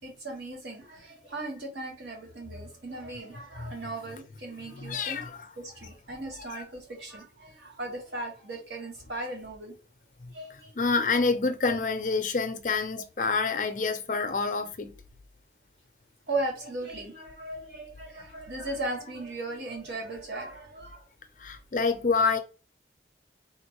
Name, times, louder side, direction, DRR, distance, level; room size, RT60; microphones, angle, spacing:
voice 1, 0.0-5.2 5.6-9.8 10.3-11.2 11.7-11.8 13.4-13.6 16.3-21.0, right 2 dB, 75° right, 1.4 m, -37 dB
voice 2, 4.7-5.5 6.5-6.6 10.5-15.0 21.4-22.4, left 4 dB, 45° left, 0.5 m, -27 dB
3.5 x 2.5 x 2.9 m
head